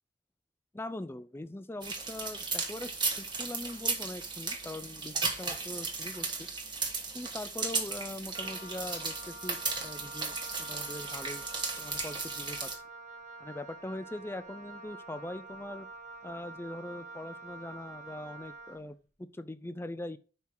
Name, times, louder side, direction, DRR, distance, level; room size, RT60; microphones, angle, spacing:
voice 1, 0.7-6.5 7.1-11.4 11.8-12.7 13.4-15.9 16.2-20.2, left 1 dB, 15° left, 0.5 m, -42 dB
sound 1, 1.8-12.8, right 4 dB, 25° right, 1.4 m, -35 dB
Wind instrument woodwind instrument, 8.3-18.9, right 2 dB, 45° right, 1.1 m, -47 dB
5.8 x 4.5 x 6.0 m
head